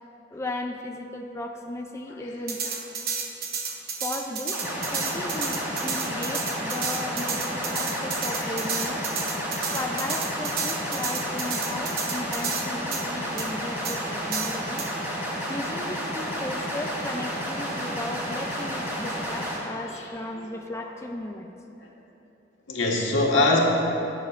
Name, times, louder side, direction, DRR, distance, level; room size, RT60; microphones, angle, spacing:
voice 1, 0.3-2.6 4.0-4.6 4.9-9.1 9.7-14.8 15.5-21.5, left 1 dB, 15° left, 2 dB, 0.4 m, -35 dB
sound 1, 2.5-12.7 12.9-13.0 13.4-13.5 13.8-14.0 14.3-14.9, right 5 dB, 50° right, 1.0 m, -31 dB
sound 2, 4.5-19.6, equal, 15° right, 1.7 m, -31 dB
voice 2, 7.8-8.9 9.4-9.8 17.7-17.8 19.8-20.1 20.3-20.5 22.7-23.6, left 2 dB, 85° left, -2 dB, 1.5 m, -26 dB
16.0 x 8.5 x 2.5 m, 3.0 s
head